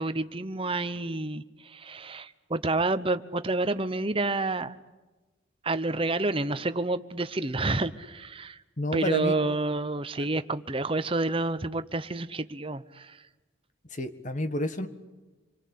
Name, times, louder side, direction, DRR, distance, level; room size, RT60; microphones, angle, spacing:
voice 1, 0.0-4.8 5.6-8.6 8.9-13.2, right 2 dB, 25° right, 12 dB, 0.9 m, -29 dB
voice 2, 8.8-9.3 10.2-10.3 13.9-14.9, left 1 dB, 40° left, 9 dB, 1.7 m, -29 dB
27.5 x 23.5 x 8.5 m, 1.2 s
head